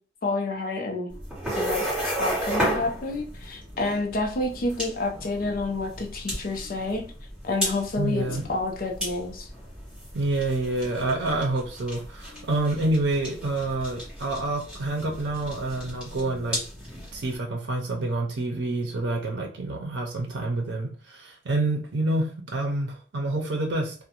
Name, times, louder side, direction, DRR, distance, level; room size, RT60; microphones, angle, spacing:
voice 1, 0.2-1.1 1.6-7.1 7.4-9.5, left 2 dB, 55° left, 3 dB, 0.5 m, -29 dB
sound 1, 1.1-17.4, equal, 5° right, 1.2 m, -34 dB
voice 2, 8.0-8.4 10.1-16.6 17.1-23.9, right 2 dB, 90° right, 1 dB, 0.5 m, -28 dB
2.5 x 2.1 x 2.8 m, 0.41 s
head